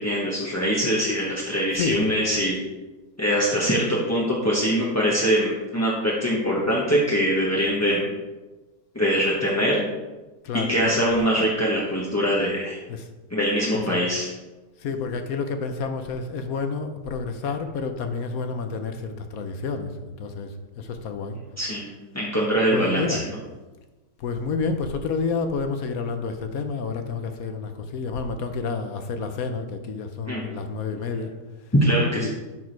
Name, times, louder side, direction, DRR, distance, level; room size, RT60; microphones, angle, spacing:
voice 1, 0.0-2.6 3.2-8.1 8.9-9.8 10.7-12.8 13.3-14.3 21.6-21.9 22.1-23.2 30.3-30.4 31.7-32.3, equal, 10° left, -5 dB, 0.9 m, -23 dB
voice 2, 1.7-2.1 10.4-11.0 12.9-13.1 13.7-14.0 14.8-21.4 22.7-23.2 24.2-31.3 32.2-32.3, left 4 dB, 60° left, 7 dB, 1.1 m, -29 dB
12.0 x 4.7 x 4.6 m, 1.2 s
omnidirectional pair, 1.9 m